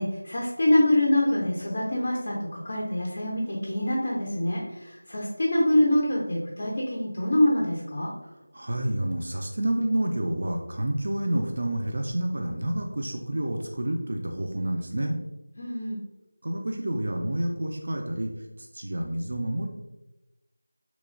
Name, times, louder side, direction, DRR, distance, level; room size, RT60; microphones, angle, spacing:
voice 1, 0.0-8.1 15.6-16.0, left 1 dB, 40° left, -4 dB, 0.4 m, -25 dB
voice 2, 8.2-15.2 16.4-18.3 18.6-19.7, right 1 dB, 55° right, 2 dB, 0.3 m, -29 dB
2.9 x 2.1 x 2.4 m, 0.99 s
figure-of-eight pair, 175°, 0 cm